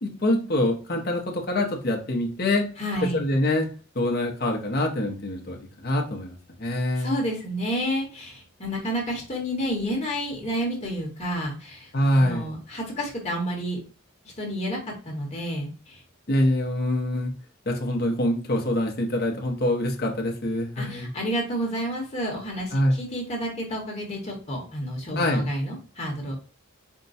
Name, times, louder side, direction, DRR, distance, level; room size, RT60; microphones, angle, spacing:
voice 1, 0.0-2.7 3.1-3.7 4.0-6.3 6.6-7.2 11.9-12.5 16.3-17.3 17.7-21.1 22.7-22.9 25.2-25.5, left 1 dB, 50° left, 1 dB, 0.7 m, -25 dB
voice 2, 2.8-3.3 6.9-13.8 14.4-14.8 15.0-16.0 20.8-26.4, equal, 30° left, 0 dB, 1.1 m, -30 dB
4.5 x 2.2 x 4.0 m, 0.36 s
head